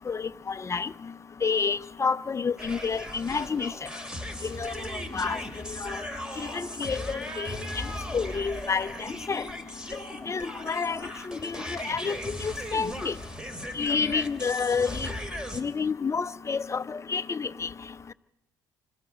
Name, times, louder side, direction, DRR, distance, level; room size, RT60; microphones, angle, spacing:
voice 1, 0.1-0.9 1.4-3.7 4.6-4.7 5.1-5.4 5.8-6.0 6.5-7.6 8.1-9.4 10.3-11.0 11.3-13.2 13.8-15.1 15.5-17.7, left 5 dB, 30° left, 0.8 m, -29 dB
sound 1, 2.6-15.6, equal, 5° right, 2.8 m, -37 dB
25.0 x 13.5 x 8.1 m
hypercardioid pair, 55°, 10 cm